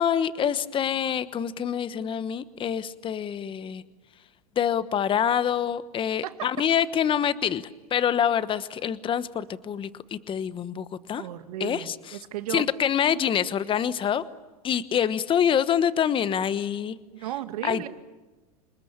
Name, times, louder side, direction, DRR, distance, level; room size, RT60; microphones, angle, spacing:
voice 1, 0.0-3.8 4.5-7.6 7.9-11.3 11.6-12.0 12.5-14.2 14.6-17.0 17.6-17.9, left 8 dB, 25° left, 14 dB, 1.2 m, -26 dB
voice 2, 11.2-12.6 17.1-17.9, right 13 dB, 75° right, 9 dB, 2.1 m, -34 dB
28.5 x 20.0 x 8.8 m, 1.1 s
hypercardioid pair, 115°, 19 cm